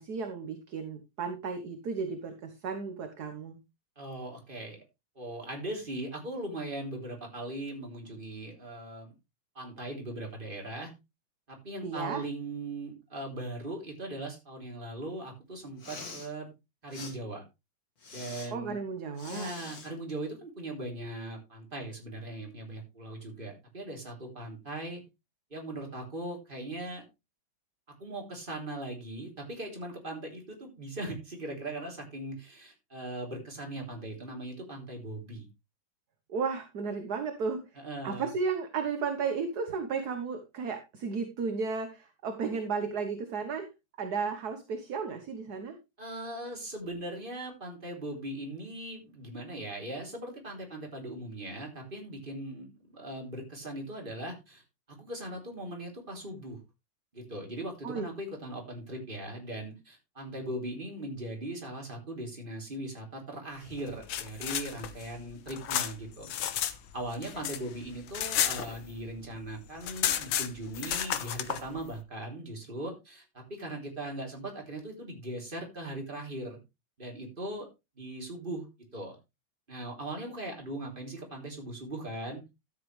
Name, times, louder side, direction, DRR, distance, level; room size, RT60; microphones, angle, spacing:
voice 1, 0.0-3.6 11.8-12.2 18.5-19.5 36.3-37.6 38.0-43.7 44.0-45.8 57.8-58.0, right 5 dB, 55° right, 7 dB, 1.6 m, -34 dB
voice 2, 4.0-4.8 5.2-9.1 9.6-10.9 11.5-16.5 16.8-17.4 18.1-18.8 19.2-25.0 25.5-27.0 28.0-35.5 37.8-38.3 46.0-54.6 54.9-56.6 57.1-66.3 66.9-76.6 77.0-77.7 78.0-78.7 78.9-79.2 79.7-82.4, right 1 dB, 25° right, 1 dB, 3.5 m, -39 dB
Respiratory sounds, 15.7-16.3 16.9-17.1 18.0-18.5 19.2-19.9, left 4 dB, 50° left, 2.5 m, -44 dB
sound 1, 63.8-66.8 67.1-69.2 69.5-69.6 69.8-71.6, left 10 dB, 75° left, 1.7 m, -32 dB
12.5 x 8.3 x 3.3 m, 0.24 s
omnidirectional pair, 2.2 m